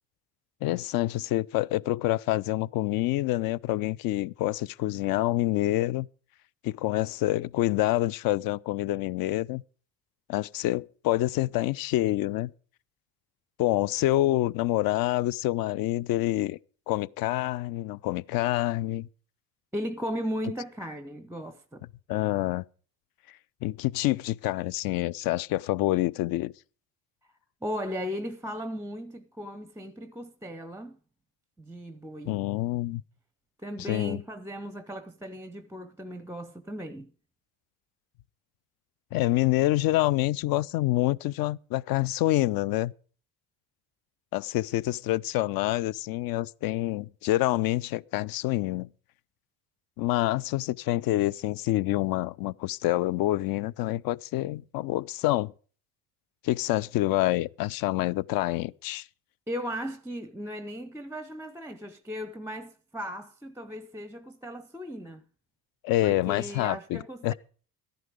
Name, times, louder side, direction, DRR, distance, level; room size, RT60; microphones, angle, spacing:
voice 1, 0.6-6.1 6.6-9.6 10.3-12.5 13.6-16.6 16.9-19.1 22.1-22.6 23.6-26.5 32.3-33.0 33.8-34.2 39.1-42.9 44.3-48.9 50.0-55.5 56.4-59.1 65.8-67.3, left 16 dB, 45° left, 0.5 m, -27 dB
voice 2, 19.7-21.9 27.6-31.0 31.6-32.4 33.6-37.1 59.5-65.2 66.0-67.3, equal, 5° right, 0.6 m, -36 dB
13.0 x 11.0 x 5.0 m
hypercardioid pair, 65°, 49 cm